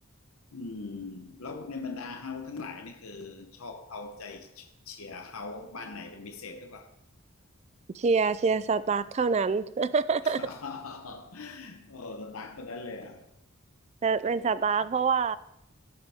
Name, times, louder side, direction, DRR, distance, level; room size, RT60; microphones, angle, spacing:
voice 1, 0.5-6.9 10.2-13.3, left 4 dB, 80° left, 0.9 m, -41 dB
voice 2, 8.0-10.4 14.0-15.4, right 5 dB, 30° right, 0.3 m, -26 dB
17.0 x 6.8 x 3.5 m
head